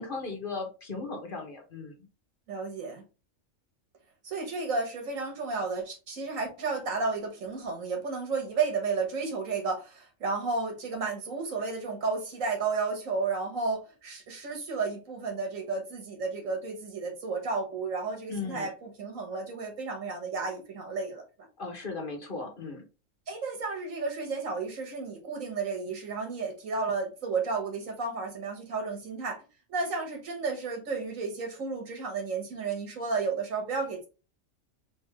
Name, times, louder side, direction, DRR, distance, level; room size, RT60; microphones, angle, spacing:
voice 1, 0.0-1.9 18.3-18.7 21.6-22.8, left 3 dB, 45° left, 1.2 m, -37 dB
voice 2, 2.5-3.0 4.2-21.2 23.3-29.4 29.7-34.1, right 4 dB, 90° right, 1.8 m, -32 dB
3.6 x 3.6 x 3.4 m
omnidirectional pair, 1.3 m